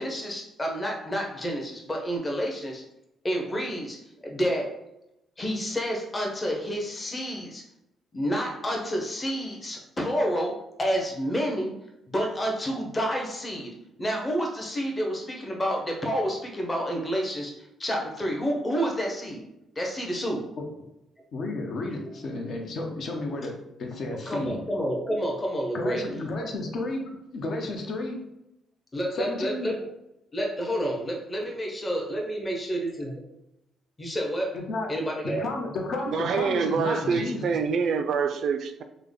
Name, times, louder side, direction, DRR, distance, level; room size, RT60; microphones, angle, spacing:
voice 1, 0.0-2.8 3.2-4.0 4.2-4.7 5.4-7.6 8.1-11.7 12.1-17.5 17.8-19.4 19.8-20.4 24.0-26.0 28.9-29.8 30.3-33.1 34.0-34.6 34.9-35.5, equal, 25° left, 0.8 m, -29 dB
voice 2, 21.3-24.6 25.7-28.2 29.1-29.7 34.5-34.9 35.2-37.6, left 2 dB, 60° left, 0.8 m, -32 dB
voice 3, 36.1-38.8, right 6 dB, 65° right, 0.3 m, -26 dB
3.4 x 2.1 x 3.6 m
cardioid pair, 90°, 0 cm